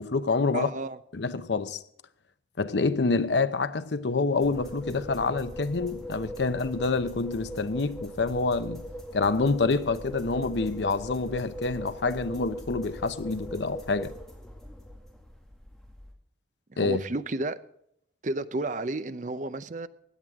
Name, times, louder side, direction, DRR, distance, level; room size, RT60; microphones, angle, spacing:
voice 1, 0.0-0.7 1.1-1.8 2.6-8.8 9.1-14.1 16.8-17.0, left 3 dB, 75° left, 0.8 m, -27 dB
voice 2, 0.5-1.0 16.7-17.6 18.2-19.9, right 2 dB, 45° right, 0.6 m, -32 dB
sound 1, 4.4-16.1, equal, ahead, 2.1 m, -40 dB
16.5 x 11.0 x 3.6 m
head